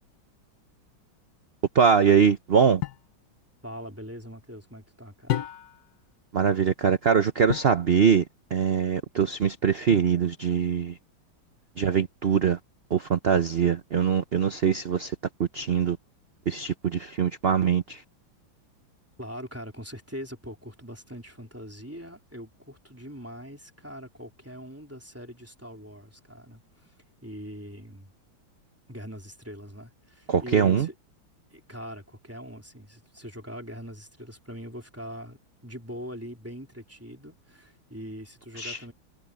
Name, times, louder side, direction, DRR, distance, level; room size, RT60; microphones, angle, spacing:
voice 1, 1.7-2.8 6.3-8.2 8.5-11.0 11.8-12.6 12.9-15.1 15.4-16.0 16.5-18.0 30.3-30.9 38.6-38.8, right 7 dB, 60° right, 0.6 m, -23 dB
sound 1, 2.8-3.1 5.3-5.9 7.5-7.8 9.9-10.4, left 13 dB, 60° left, 1.1 m, -32 dB
voice 2, 3.6-5.5 19.2-26.9 27.2-28.1 28.9-30.9 31.5-38.9, equal, 5° right, 3.2 m, -42 dB
omnidirectional pair, 2.2 m